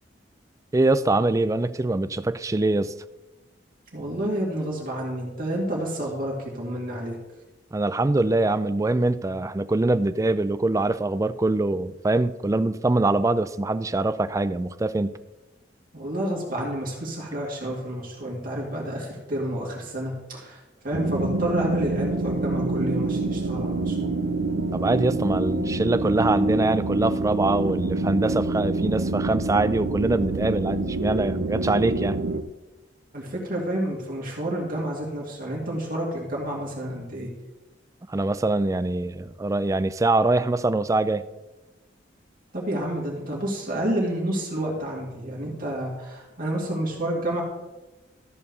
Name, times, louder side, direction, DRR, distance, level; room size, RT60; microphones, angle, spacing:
voice 1, 0.7-2.9 7.7-15.2 24.7-32.2 38.1-41.2, right 2 dB, 15° right, 13 dB, 0.3 m, -23 dB
voice 2, 3.9-7.2 15.9-24.1 33.1-37.3 42.5-47.4, right 1 dB, 45° right, -4 dB, 2.3 m, -29 dB
sound 1, 20.9-32.4, right 2 dB, 75° right, 0.7 m, -26 dB
13.5 x 4.5 x 6.8 m, 1.1 s
head